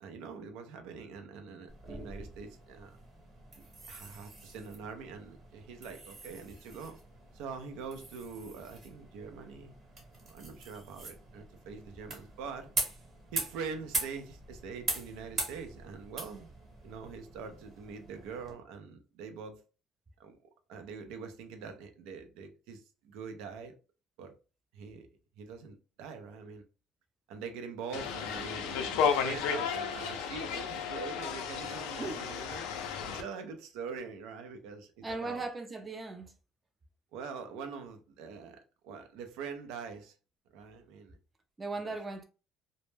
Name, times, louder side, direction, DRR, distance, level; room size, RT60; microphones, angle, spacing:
voice 1, 0.0-3.0 3.9-7.0 7.3-9.7 10.3-12.7 13.3-16.5 16.8-19.6 20.2-20.4 20.7-23.8 24.2-24.4 24.7-25.1 25.4-26.6 27.3-32.6 33.1-35.4 37.1-40.1 40.5-41.2 41.8-42.0, right 5 dB, 80° right, 0.4 m, -44 dB
sound 1, 1.7-18.5, right 3 dB, 35° right, 1.0 m, -42 dB
sound 2, 27.9-33.2, left 7 dB, 85° left, 0.4 m, -33 dB
voice 2, 35.0-36.3 41.6-42.2, right 3 dB, 20° right, 0.4 m, -38 dB
2.1 x 2.0 x 3.1 m
cardioid pair, 130°, 0 cm